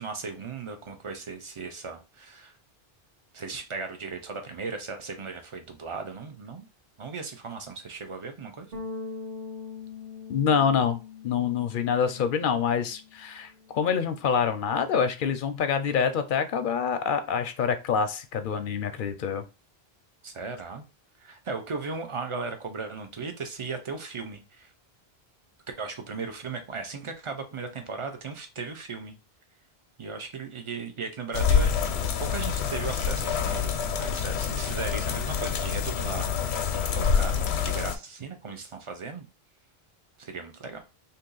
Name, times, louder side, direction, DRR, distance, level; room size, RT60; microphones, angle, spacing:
voice 1, 0.0-2.5 3.3-6.7 7.0-8.7 20.2-20.8 21.2-24.7 25.8-29.2 30.0-31.7 32.2-36.5 36.9-39.2 40.2-40.9, right 4 dB, 35° right, 6 dB, 0.6 m, -37 dB
Bass guitar, 8.7-15.0, left 4 dB, 65° right, 1.4 m, -43 dB
voice 2, 10.3-11.0 11.2-19.4, left 7 dB, 60° left, 9 dB, 0.7 m, -26 dB
sound 1, 31.3-38.0, left 7 dB, 90° left, 0.8 m, -26 dB
2.7 x 2.7 x 3.8 m, 0.28 s
omnidirectional pair, 1.0 m